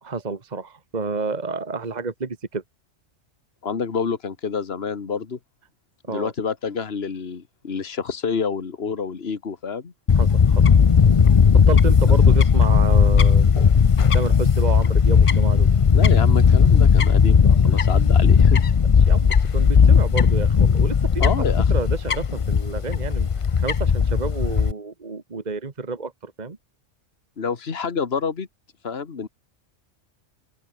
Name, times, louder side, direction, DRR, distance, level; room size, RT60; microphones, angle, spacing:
voice 1, 0.0-2.6 6.1-6.3 10.1-10.6 11.5-13.6 14.1-15.7 19.1-23.3 23.6-26.6, right 4 dB, 35° right, 1.6 m, -30 dB
voice 2, 3.6-5.4 6.1-9.9 12.1-12.2 15.9-18.6 21.2-21.7 27.4-28.5 28.8-29.3, left 5 dB, 55° left, 1.9 m, -28 dB
Fowl / Bird, 10.1-24.7, left 6 dB, 40° left, 0.5 m, -16 dB
open air
omnidirectional pair, 1.2 m